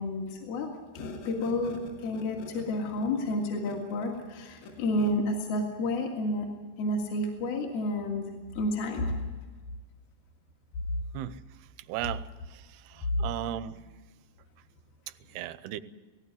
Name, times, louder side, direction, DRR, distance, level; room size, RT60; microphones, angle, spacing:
voice 1, 0.0-6.5 6.8-8.3 8.6-9.2 13.1-13.4, left 1 dB, 65° left, 0 dB, 3.6 m, -30 dB
voice 2, 11.9-12.2 12.5-12.6 12.9-13.8 15.3-15.8, right 13 dB, 80° right, 14 dB, 2.5 m, -35 dB
18.0 x 17.5 x 9.4 m, 1.4 s
omnidirectional pair, 4.7 m